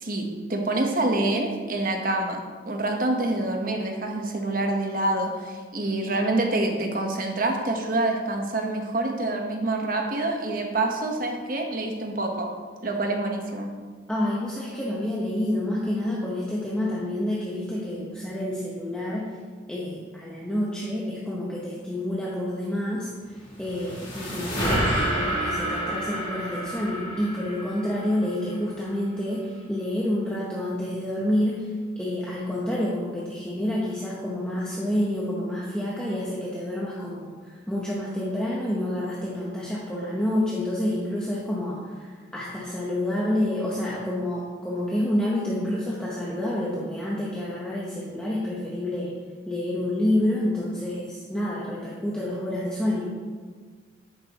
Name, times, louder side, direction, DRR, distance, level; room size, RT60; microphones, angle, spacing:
voice 1, 0.0-2.4 2.6-12.5 12.8-13.7, right 2 dB, 45° right, 2 dB, 1.2 m, -26 dB
voice 2, 14.1-19.3 19.7-23.1 23.6-31.7 32.0-49.1 49.5-53.1, left 1 dB, 5° left, -6 dB, 1.1 m, -28 dB
sound 1, 23.3-28.7, right 1 dB, 25° left, 2.7 m, -29 dB
10.5 x 8.9 x 3.0 m, 1.5 s
head